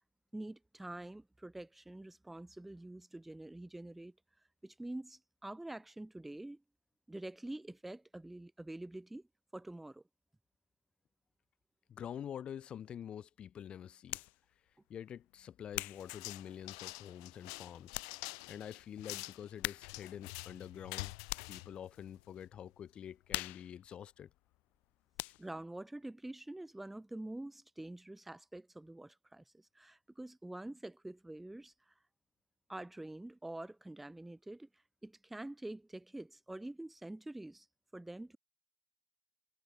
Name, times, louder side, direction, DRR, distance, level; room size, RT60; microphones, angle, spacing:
voice 1, 0.3-4.1 4.6-6.6 7.1-9.3 9.5-10.0 25.4-31.9 32.7-34.7 35.0-37.7 37.9-38.4, right 1 dB, 5° right, 0.4 m, -46 dB
voice 2, 11.9-14.2 14.9-18.0 18.5-21.1 21.5-24.3, left 9 dB, 35° left, 0.9 m, -47 dB
sound 1, 14.1-14.4 15.0-17.0 17.5-17.6 17.9-18.2 18.5-18.6 19.6-20.1 20.4-21.7 22.1-22.4 22.7-24.8 25.1-25.6, left 21 dB, 65° left, 0.7 m, -43 dB
sound 2, 16.0-22.5, left 30 dB, 80° left, 0.3 m, -47 dB
supercardioid pair, 120°, 3 cm